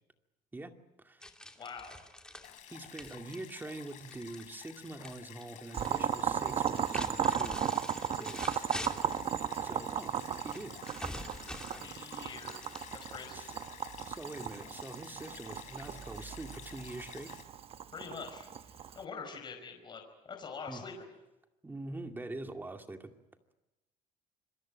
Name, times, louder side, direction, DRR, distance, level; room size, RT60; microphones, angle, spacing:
voice 1, 0.5-1.2 2.7-7.9 8.2-8.7 9.6-10.1 10.4-10.8 12.9-13.0 13.3-13.5 14.0-17.3 20.7-20.8 21.6-23.1, right 2 dB, 15° right, 5 dB, 2.2 m, -44 dB
sound 1, 1.2-5.2 5.4-6.0 6.6-9.3 10.5-13.2, left 1 dB, 5° left, 2.6 m, -45 dB
voice 2, 1.6-2.1 11.7-12.6 12.9-13.5 17.9-20.0 20.3-21.1, left 5 dB, 35° left, 3 dB, 5.1 m, -45 dB
Stream, 2.4-17.4, left 11 dB, 65° left, 4.4 m, -52 dB
Boiling, 5.7-19.0, right 8 dB, 45° right, 1.2 m, -36 dB
27.0 x 22.5 x 8.9 m, 0.99 s
cardioid pair, 125°, 14 cm